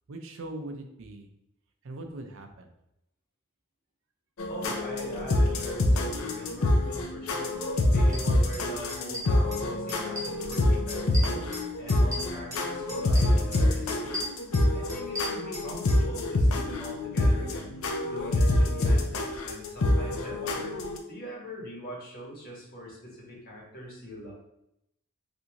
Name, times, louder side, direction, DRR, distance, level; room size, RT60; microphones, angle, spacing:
voice 1, 0.1-1.3 1.8-2.7, right 2 dB, 60° right, 5 dB, 0.5 m, -40 dB
sound 1, 4.4-21.0, left 1 dB, 70° left, 0.5 m, -26 dB
voice 2, 4.5-7.6 7.9-11.5 11.8-14.3 14.7-17.8 18.1-20.8 21.1-24.3, equal, 45° left, -4 dB, 1.2 m, -42 dB
sound 2, 8.1-8.2 8.5-8.6 8.9-9.6 9.9-10.6 10.9-12.6 12.9-13.6 13.9-16.0, equal, 15° right, 0.9 m, -37 dB
3.5 x 2.6 x 2.9 m, 0.82 s
head